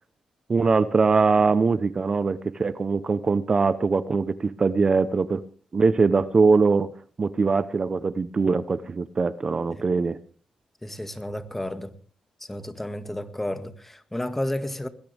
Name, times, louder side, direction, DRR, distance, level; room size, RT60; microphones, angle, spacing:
voice 1, 0.5-5.4 5.7-6.9 7.2-10.2, right 4 dB, 40° right, 0.9 m, -22 dB
voice 2, 10.8-11.9 12.4-14.9, left 1 dB, 10° left, 1.9 m, -32 dB
20.5 x 17.0 x 3.5 m
cardioid pair, 80°, 2 cm